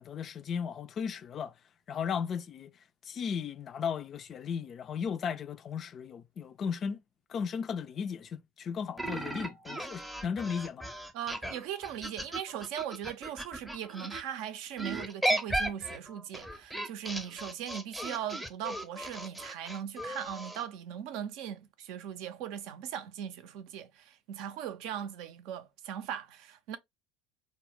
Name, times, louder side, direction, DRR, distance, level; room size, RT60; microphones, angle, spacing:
voice 1, 0.0-1.5 1.9-2.7 3.0-7.0 7.3-10.9, left 7 dB, 40° left, 0.3 m, -35 dB
sound 1, 9.0-14.2 14.8-20.6, right 1 dB, 5° right, 0.6 m, -36 dB
voice 2, 11.1-26.8, right 9 dB, 60° right, 0.4 m, -39 dB
2.2 x 2.0 x 3.8 m
figure-of-eight pair, 70°, 0 cm